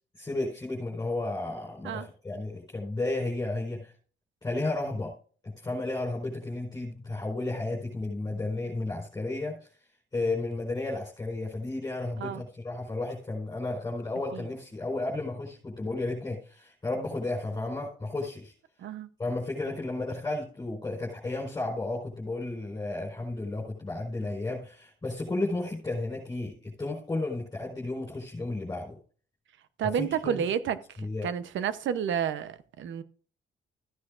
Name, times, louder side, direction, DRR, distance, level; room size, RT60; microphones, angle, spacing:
voice 1, 0.2-3.9 4.4-5.1 5.4-9.8 10.1-18.5 19.2-29.0 29.8-30.4 31.0-31.3, left 2 dB, 15° left, -3 dB, 4.6 m, -33 dB
voice 2, 29.8-30.8 31.2-33.0, right 8 dB, 70° right, 13 dB, 0.9 m, -30 dB
15.0 x 9.7 x 2.6 m, 0.42 s
cardioid pair, 90°, 20 cm